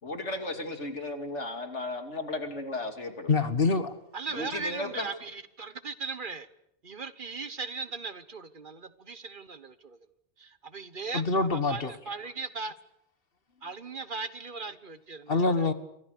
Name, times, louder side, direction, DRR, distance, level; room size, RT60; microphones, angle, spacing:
voice 1, 0.0-3.3 4.3-5.1, left 2 dB, 90° left, 6 dB, 3.1 m, -35 dB
voice 2, 3.3-3.9 11.1-11.9 15.3-15.7, left 3 dB, 55° left, 11 dB, 1.9 m, -25 dB
voice 3, 4.1-6.5 6.8-10.1 10.4-12.7 13.6-15.7, right 4 dB, 50° right, 13 dB, 1.3 m, -38 dB
28.5 x 24.5 x 6.7 m, 0.78 s
omnidirectional pair, 1.2 m